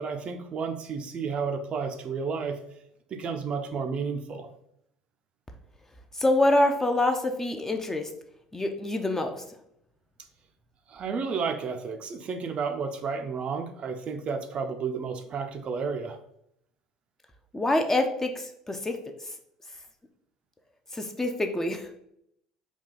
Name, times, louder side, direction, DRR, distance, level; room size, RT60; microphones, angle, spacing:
voice 1, 0.0-2.6 3.1-4.5 10.9-16.2, right 5 dB, 40° right, 6 dB, 0.5 m, -32 dB
voice 2, 6.1-8.1 8.5-9.4 17.5-19.0 20.9-21.9, left 1 dB, 15° left, 5 dB, 0.5 m, -26 dB
4.0 x 2.3 x 3.7 m, 0.74 s
figure-of-eight pair, 65°, 3 cm